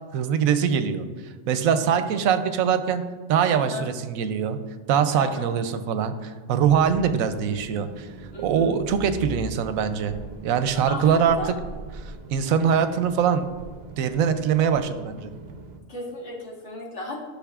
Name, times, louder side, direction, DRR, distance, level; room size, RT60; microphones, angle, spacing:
voice 1, 0.1-1.0 1.5-3.0 3.3-4.6 4.9-8.1 8.4-10.1 10.4-11.4 12.0-13.5 14.0-15.3, right 7 dB, 85° right, 10 dB, 1.0 m, -23 dB
voice 2, 3.5-3.8 5.2-5.5 8.3-8.7 10.9-11.5 15.9-17.2, left 2 dB, 60° left, -3 dB, 1.7 m, -35 dB
sound 1, 6.6-15.8, right 3 dB, 50° right, 0.6 m, -41 dB
11.5 x 6.0 x 2.4 m, 1.4 s
omnidirectional pair, 1.4 m